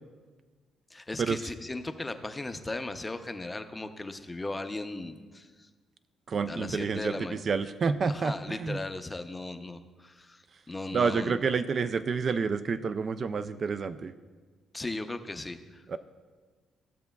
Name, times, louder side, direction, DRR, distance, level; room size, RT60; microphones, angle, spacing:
voice 1, 0.9-5.7 6.5-7.4 8.0-11.4 14.7-15.8, left 2 dB, 20° left, 8 dB, 0.5 m, -37 dB
voice 2, 6.3-8.8 10.9-14.1 15.9-16.0, right 5 dB, 45° right, 11 dB, 0.3 m, -29 dB
14.5 x 6.9 x 2.3 m, 1.4 s
cardioid pair, 90°, 0 cm